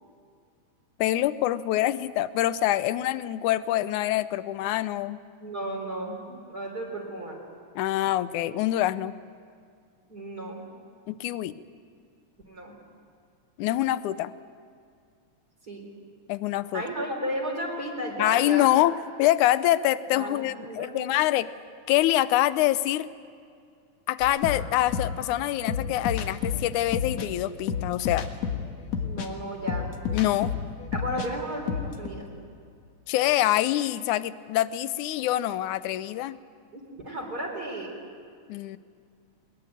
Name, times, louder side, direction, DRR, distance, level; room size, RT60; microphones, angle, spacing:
voice 1, 1.0-5.2 7.8-9.1 11.1-11.6 13.6-14.3 16.3-16.8 18.2-21.5 21.9-23.1 24.1-28.3 30.1-30.5 33.1-36.4 38.5-38.8, left 14 dB, 90° left, 15 dB, 2.2 m, -25 dB
voice 2, 5.4-7.4 10.1-10.6 12.5-12.8 15.6-15.9 16.7-18.8 20.1-21.1 29.0-29.9 30.9-32.2 36.7-37.9, right 1 dB, 30° right, 0 dB, 4.2 m, -34 dB
sound 1, 24.2-31.3 31.6-32.1, left 7 dB, 65° left, 2.7 m, -31 dB
21.5 x 21.0 x 9.1 m, 2.3 s
omnidirectional pair, 3.4 m